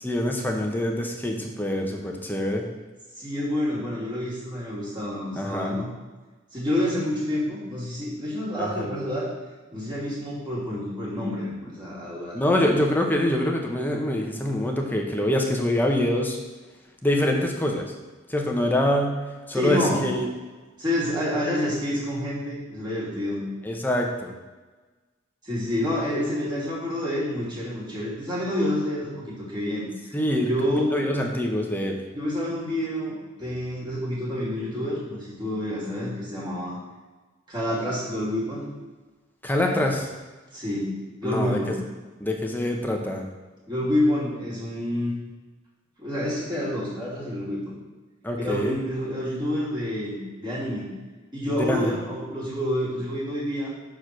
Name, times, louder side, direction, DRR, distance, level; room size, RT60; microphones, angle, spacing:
voice 1, 0.0-2.6 5.3-5.8 8.6-8.7 12.3-16.4 17.0-17.9 18.3-19.2 19.5-20.3 23.6-24.3 30.1-32.0 39.4-40.1 41.2-41.6 42.2-43.2 48.2-48.8 51.7-51.9, left 1 dB, 10° left, 1 dB, 0.9 m, -25 dB
voice 2, 3.2-5.9 6.5-9.3 9.7-12.7 19.5-20.1 20.8-23.4 25.4-29.9 30.5-30.9 32.1-36.8 37.5-38.7 40.5-41.8 43.7-45.1 46.0-47.6 48.4-50.9 51.3-53.7, left 1 dB, 25° right, -7 dB, 2.7 m, -28 dB
6.5 x 4.8 x 5.9 m, 1.3 s
head